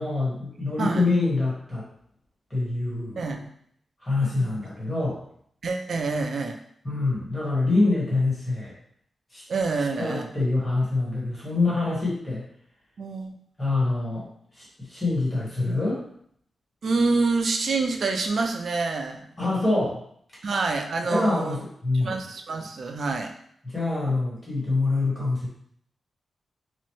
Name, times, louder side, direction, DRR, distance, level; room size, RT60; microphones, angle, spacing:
voice 1, 0.0-1.8 2.5-3.2 4.0-5.2 6.8-8.7 9.3-9.4 10.0-12.4 13.6-14.3 14.5-16.0 19.4-20.0 21.1-22.1 23.6-25.5, left 2 dB, 20° left, -7 dB, 1.4 m, -25 dB
voice 2, 0.8-1.1 3.2-3.5 5.6-6.6 9.5-10.3 13.0-13.4 16.8-19.2 20.4-21.6 21.9-23.3, right 3 dB, 65° right, 4 dB, 0.4 m, -27 dB
3.0 x 2.0 x 3.0 m, 0.67 s
wide cardioid pair, 110°, 0 cm